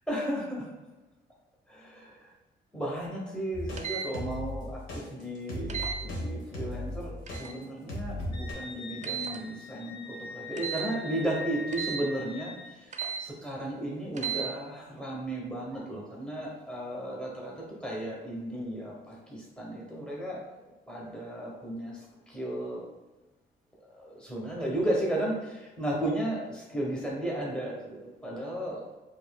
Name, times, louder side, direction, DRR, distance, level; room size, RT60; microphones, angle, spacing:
voice 1, 0.1-0.6 2.7-7.1 7.4-12.5 13.2-22.9 24.0-28.8, right 1 dB, 5° left, -3 dB, 0.9 m, -34 dB
sound 1, 3.5-7.4 7.9-8.5, left 1 dB, 80° left, 1.2 m, -36 dB
sound 2, 3.8-4.1 5.7-6.0 7.3-7.6 9.0-9.4 10.6-10.9 11.7-12.0 12.9-13.2 14.1-14.5, right 8 dB, 35° right, 0.5 m, -34 dB
Wind instrument woodwind instrument, 8.3-12.8, left 3 dB, 60° left, 0.8 m, -42 dB
4.9 x 2.7 x 2.2 m, 1.1 s
cardioid pair, 90°, 20 cm